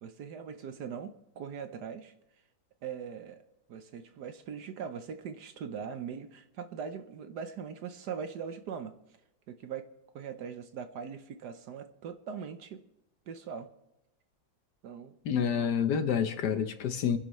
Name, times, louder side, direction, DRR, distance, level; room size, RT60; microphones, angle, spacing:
voice 1, 0.0-2.1 2.8-3.4 3.7-8.9 9.5-9.9 10.1-12.8 13.3-13.7 14.8-15.2, right 7 dB, 65° right, 1.2 m, -41 dB
voice 2, 15.2-17.2, left 7 dB, 65° left, 1.3 m, -28 dB
26.0 x 10.5 x 3.1 m
omnidirectional pair, 2.1 m